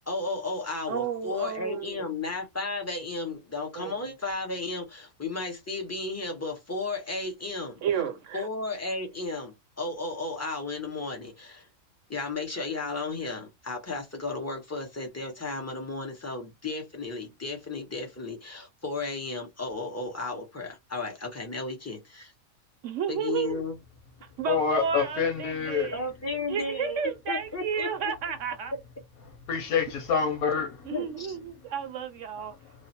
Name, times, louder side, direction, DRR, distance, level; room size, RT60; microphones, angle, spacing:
voice 1, 0.1-7.8 8.3-11.7 12.1-22.3 23.1-23.7 25.9-27.0 27.3-28.1 30.9-31.4, left 3 dB, 15° left, 0.7 m, -34 dB
voice 2, 0.9-2.0 3.7-4.1 7.8-8.5 22.8-23.7 24.4-26.1 26.5-28.7 30.8-32.6, right 7 dB, 65° right, 1.0 m, -32 dB
voice 3, 24.5-25.9 29.5-30.9, left 6 dB, 85° left, 1.4 m, -27 dB
3.1 x 2.0 x 4.1 m
omnidirectional pair, 1.5 m